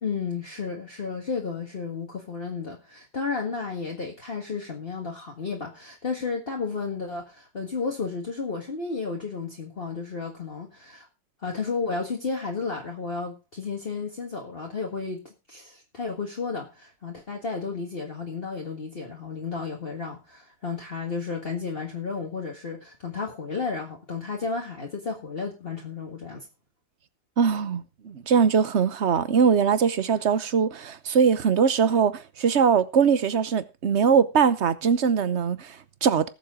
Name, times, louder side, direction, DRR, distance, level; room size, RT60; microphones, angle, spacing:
voice 1, 0.0-11.1 11.4-26.4, left 4 dB, 35° left, 1.8 m, -32 dB
voice 2, 27.4-36.3, right 6 dB, 50° right, 1.0 m, -22 dB
19.0 x 7.5 x 3.7 m
omnidirectional pair, 1.9 m